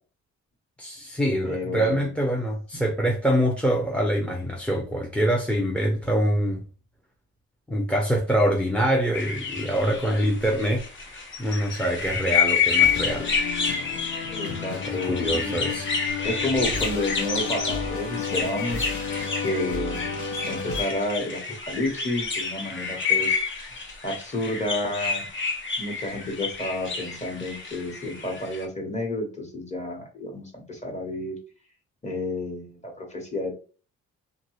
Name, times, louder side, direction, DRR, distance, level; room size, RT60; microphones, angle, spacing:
voice 1, 0.8-6.6 7.7-13.4 14.5-15.9, equal, 5° left, 0.6 m, -25 dB
voice 2, 1.4-2.1 2.7-2.8 14.3-15.5 16.2-18.9 19.4-20.1 20.5-23.4 24.0-25.2 25.8-31.4 32.0-33.5, left 1 dB, 25° left, 1.3 m, -30 dB
sound 1, 9.1-28.6, left 5 dB, 40° left, 0.8 m, -29 dB
sound 2, 12.8-20.8, left 5 dB, 75° left, 0.9 m, -32 dB
2.8 x 2.5 x 3.1 m
cardioid pair, 90°, 30 cm